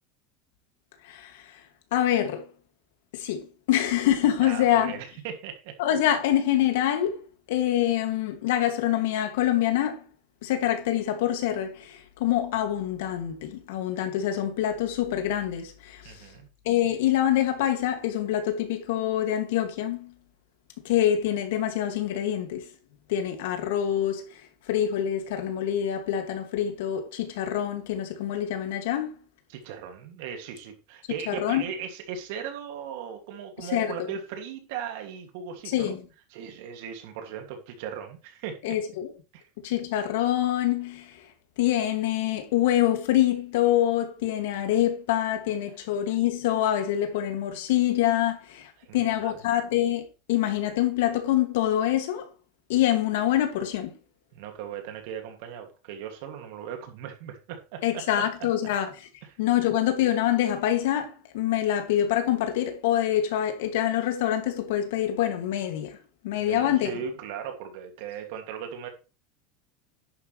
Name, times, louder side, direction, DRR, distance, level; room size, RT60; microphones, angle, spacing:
voice 1, 1.0-1.4 1.9-2.5 3.1-5.0 5.8-7.2 7.5-10.0 10.4-16.1 16.6-20.1 20.8-22.7 23.1-24.2 24.7-29.2 31.3-31.6 33.7-33.9 35.7-36.0 38.6-39.1 39.6-41.2 41.6-52.3 52.7-53.9 57.8-58.9 59.4-66.0 66.2-66.9, left 11 dB, 75° left, 2.4 m, -25 dB
voice 2, 4.4-5.7 16.0-16.5 29.5-36.0 36.3-38.8 39.3-39.5 48.8-49.4 54.3-58.5 59.2-59.4 66.4-68.9, right 8 dB, 60° right, 2.5 m, -38 dB
10.5 x 8.0 x 3.3 m
supercardioid pair, 170°, 0 cm